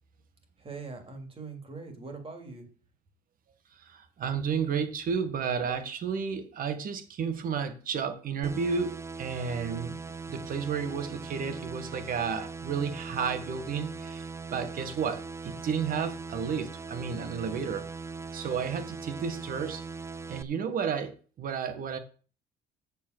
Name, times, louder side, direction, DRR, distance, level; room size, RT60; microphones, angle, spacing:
voice 1, 0.6-2.7, right 4 dB, 35° right, 5 dB, 3.0 m, -42 dB
voice 2, 3.7-10.0 10.3-14.3 14.5-17.9 18.3-19.8 20.3-22.0, right 6 dB, 55° right, 9 dB, 1.7 m, -32 dB
sound 1, 8.4-20.4, right 4 dB, 15° right, 0.5 m, -40 dB
7.3 x 6.9 x 6.7 m, 0.39 s
cardioid pair, 110°, 17 cm